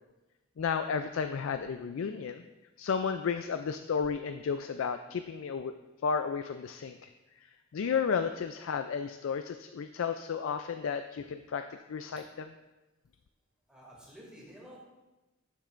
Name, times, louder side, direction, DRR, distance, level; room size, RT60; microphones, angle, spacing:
voice 1, 0.6-2.4 2.8-5.7 6.0-7.1 7.7-12.5, left 6 dB, 75° left, 8 dB, 0.4 m, -33 dB
voice 2, 13.7-14.8, equal, 5° right, -5 dB, 2.4 m, -51 dB
12.0 x 7.4 x 2.5 m, 1.1 s
head